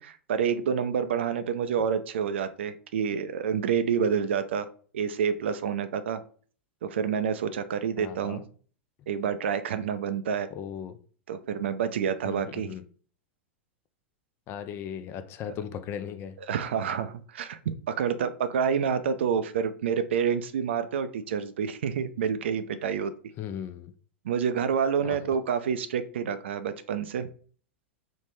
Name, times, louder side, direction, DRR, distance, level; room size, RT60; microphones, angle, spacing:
voice 1, 0.0-4.7 4.9-6.2 6.8-8.4 9.1-10.5 11.3-12.7 15.5-15.6 16.5-23.1 24.2-27.3, right 7 dB, 70° right, 0.3 m, -28 dB
voice 2, 8.0-8.4 10.5-11.0 12.2-12.8 14.5-16.4 23.4-23.9 25.0-25.2, left 9 dB, 35° left, 0.4 m, -37 dB
3.2 x 2.1 x 3.0 m
figure-of-eight pair, 95°, 7 cm